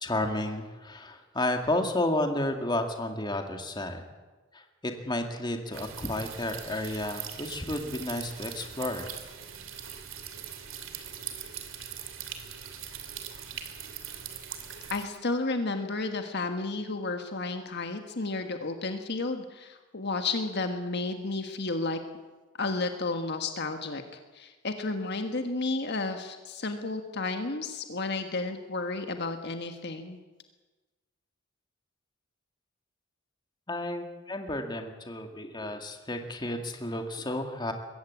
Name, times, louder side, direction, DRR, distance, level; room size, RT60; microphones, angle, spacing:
voice 1, 0.0-4.0 4.5-9.1 33.7-37.7, left 1 dB, 20° left, 5 dB, 2.1 m, -32 dB
sound 1, 5.7-15.0, right 8 dB, 70° right, 2.7 m, -41 dB
voice 2, 14.9-22.0 22.6-24.0 24.3-30.2, left 3 dB, 55° left, 6 dB, 1.5 m, -32 dB
22.0 x 16.0 x 8.5 m, 1.2 s
head